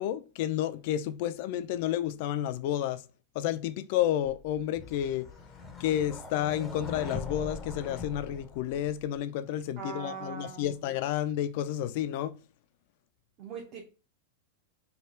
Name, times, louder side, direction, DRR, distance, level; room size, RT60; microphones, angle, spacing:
voice 1, 0.0-3.0 3.3-5.3 5.8-12.4, left 11 dB, 55° left, 0.4 m, -31 dB
sound 1, 4.2-9.2, left 3 dB, 10° left, 0.6 m, -42 dB
voice 2, 9.8-10.7 13.4-13.9, right 6 dB, 35° right, 0.8 m, -40 dB
3.3 x 2.3 x 4.3 m
supercardioid pair, 145°, 0 cm